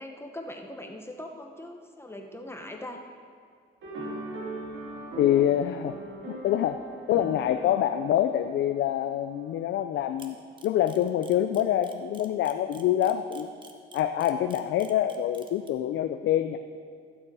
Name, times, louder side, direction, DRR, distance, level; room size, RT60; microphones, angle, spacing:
voice 1, 0.0-3.2, left 1 dB, 10° left, 3 dB, 1.0 m, -41 dB
sound 1, 3.8-9.4, right 1 dB, 70° right, 2.9 m, -40 dB
voice 2, 5.2-6.0 6.3-6.8 7.1-10.4 10.6-13.5 13.9-16.6, left 11 dB, 75° left, 8 dB, 0.5 m, -25 dB
Camera, 10.2-15.7, right 3 dB, 25° right, 1.2 m, -50 dB
15.0 x 7.3 x 4.8 m, 2.1 s
cardioid pair, 90°, 20 cm